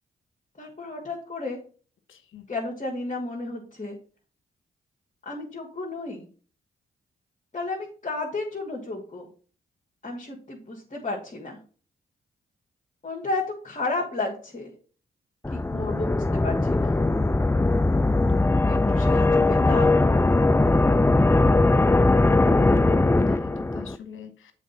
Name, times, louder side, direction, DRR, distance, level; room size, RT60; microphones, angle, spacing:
voice 1, 0.6-1.6 2.5-3.9 5.3-6.3 7.5-9.2 10.0-11.6 13.0-14.7 15.5-17.0 18.5-19.9, left 3 dB, 35° left, -4 dB, 2.2 m, -32 dB
voice 2, 2.1-2.4 15.7-16.1 22.3-24.5, left 8 dB, 70° left, 9 dB, 1.1 m, -41 dB
sound 1, 15.4-24.0, left 2 dB, 10° left, 0.5 m, -20 dB
7.3 x 4.0 x 5.7 m, 0.41 s
supercardioid pair, 45°, 21 cm